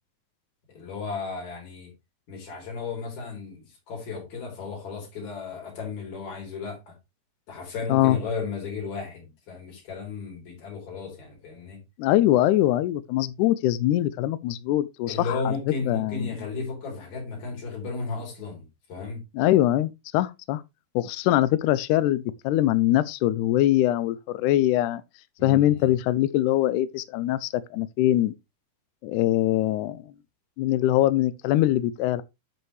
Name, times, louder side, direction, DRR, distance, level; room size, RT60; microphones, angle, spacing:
voice 1, 0.7-1.9 2.3-6.9 7.5-11.8 15.1-19.2 25.4-25.9, left 4 dB, 60° left, 4.8 m, -34 dB
voice 2, 12.0-15.3 15.9-16.3 19.3-20.6 21.0-25.0 25.4-28.3 29.0-30.1 30.6-32.2, left 14 dB, 80° left, 1.9 m, -23 dB
8.0 x 7.8 x 3.2 m
omnidirectional pair, 3.8 m